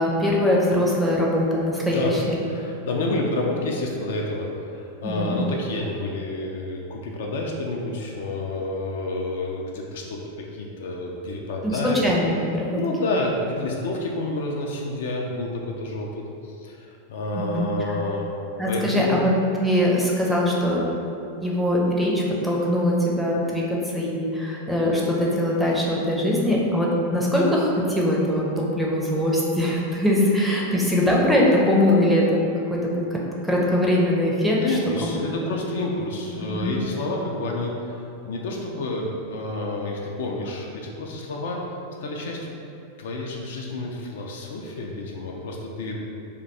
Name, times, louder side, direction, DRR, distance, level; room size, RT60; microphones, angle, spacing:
voice 1, 0.0-2.4 5.0-5.3 11.6-12.8 17.3-17.7 18.6-19.3 19.6-20.8 21.4-32.4 32.7-33.2 33.4-35.2 36.4-36.7, left 1 dB, ahead, -4 dB, 0.5 m, -22 dB
voice 2, 2.4-12.0 12.8-18.3 18.7-19.2 30.6-30.7 34.6-42.6 43.0-46.0, left 2 dB, 55° left, -1 dB, 0.3 m, -29 dB
2.5 x 2.2 x 3.9 m, 2.6 s
figure-of-eight pair, 90°, 0 cm